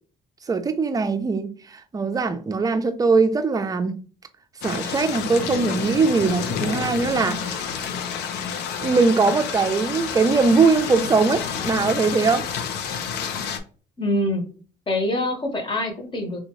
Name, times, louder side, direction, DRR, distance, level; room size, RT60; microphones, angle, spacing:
voice 1, 0.5-3.9 4.6-7.6 8.8-12.5, right 4 dB, 20° right, 0.5 m, -21 dB
sound 1, 4.6-13.6, left 7 dB, 85° left, 0.6 m, -29 dB
voice 2, 14.0-14.4 14.9-16.4, left 1 dB, 30° left, 1.0 m, -25 dB
3.4 x 2.7 x 3.0 m
cardioid pair, 110°, 17 cm